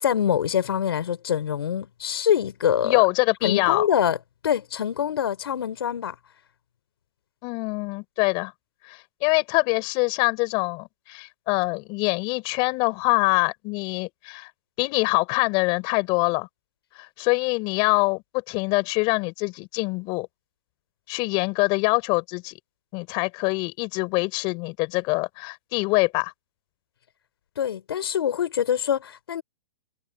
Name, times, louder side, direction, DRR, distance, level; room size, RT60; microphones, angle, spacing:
voice 1, 0.0-3.0 3.4-4.2 4.4-6.1 27.6-29.4, left 9 dB, 75° left, 5.1 m, -24 dB
voice 2, 2.8-3.8 7.4-8.5 8.8-14.5 14.8-16.5 17.0-20.3 21.1-22.5 22.9-26.3, left 29 dB, 40° left, 6.1 m, -24 dB
hypercardioid pair, 130°, 13 cm